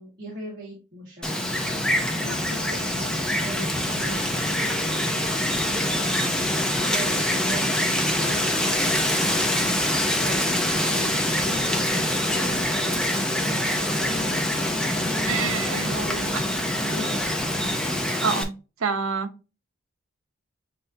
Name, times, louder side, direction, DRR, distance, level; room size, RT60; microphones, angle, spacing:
voice 1, 0.0-5.3 5.6-9.0 9.3-15.4 15.7-18.0, equal, 40° right, 1.4 m, -40 dB
Wind, 1.2-18.4, left 1 dB, 5° left, 0.6 m, -25 dB
sound 1, 1.4-18.1, left 2 dB, 55° left, 0.9 m, -39 dB
voice 2, 15.3-15.9 18.2-18.5 18.8-19.3, right 5 dB, 80° right, 0.8 m, -26 dB
7.4 x 2.6 x 2.7 m
head